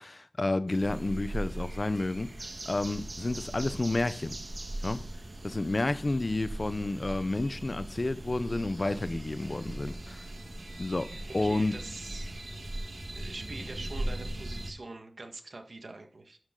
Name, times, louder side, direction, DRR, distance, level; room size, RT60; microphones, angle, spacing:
voice 1, 0.0-2.3 2.7-4.4 4.8-5.0 5.4-10.2 10.8-11.8, left 2 dB, 55° left, 0.7 m, -30 dB
sound 1, 0.7-14.7, right 1 dB, 60° right, 1.5 m, -39 dB
voice 2, 11.4-12.3 13.1-16.4, right 2 dB, 80° right, 1.6 m, -44 dB
11.0 x 6.4 x 3.9 m
wide cardioid pair, 45°, 0 cm